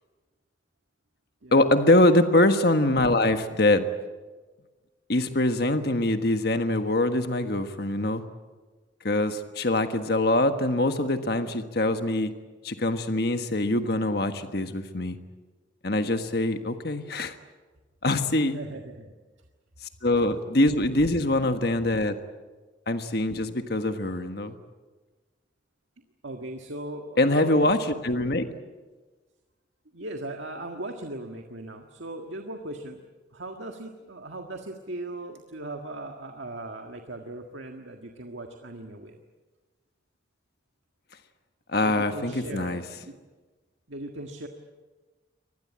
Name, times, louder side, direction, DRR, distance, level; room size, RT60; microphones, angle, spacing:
voice 1, 1.5-3.9 5.1-8.2 9.0-12.3 12.6-15.2 15.8-17.3 18.0-18.6 20.0-22.2 22.9-24.6 27.2-28.4 41.7-42.8, left 1 dB, 55° left, 8 dB, 1.5 m, -23 dB
voice 2, 18.5-19.1 20.6-21.3 26.2-27.7 29.9-33.0 33.3-39.2 41.8-43.2 43.9-44.5, right 2 dB, 80° right, 4 dB, 1.7 m, -38 dB
24.5 x 20.0 x 8.8 m, 1.3 s
head